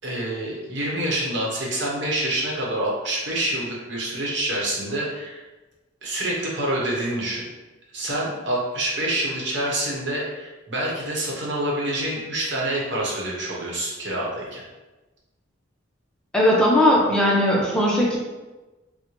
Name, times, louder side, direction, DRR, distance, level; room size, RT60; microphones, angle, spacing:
voice 1, 0.0-5.4 6.0-7.5 7.9-14.6, right 1 dB, 65° right, -4 dB, 0.9 m, -27 dB
voice 2, 16.3-18.2, left 1 dB, 5° left, -5 dB, 0.5 m, -18 dB
4.2 x 2.1 x 2.9 m, 1.1 s
head